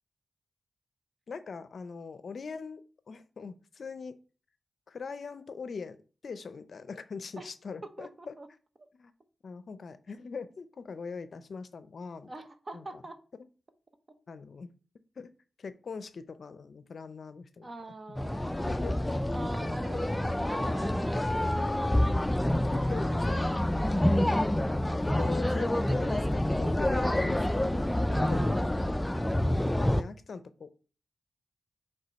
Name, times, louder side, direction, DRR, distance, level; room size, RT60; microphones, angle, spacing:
voice 1, 1.3-4.2 4.9-6.0 6.2-8.3 9.0-9.1 9.4-12.3 12.7-12.8 14.3-14.7 15.2-15.3 15.6-17.7 18.7-19.0 19.9-20.1 22.7-24.5 25.2-27.9 28.2-28.9 29.7-30.7, left 5 dB, 65° left, 12 dB, 0.5 m, -41 dB
voice 2, 7.8-8.5 8.8-8.9 12.2-13.2 17.6-22.2 23.9-24.4 28.0-28.9, right 2 dB, 35° right, 8 dB, 0.8 m, -44 dB
sound 1, 18.2-30.0, left 1 dB, 10° left, 0.4 m, -27 dB
5.3 x 3.6 x 5.2 m, 0.37 s
wide cardioid pair, 85°, 0 cm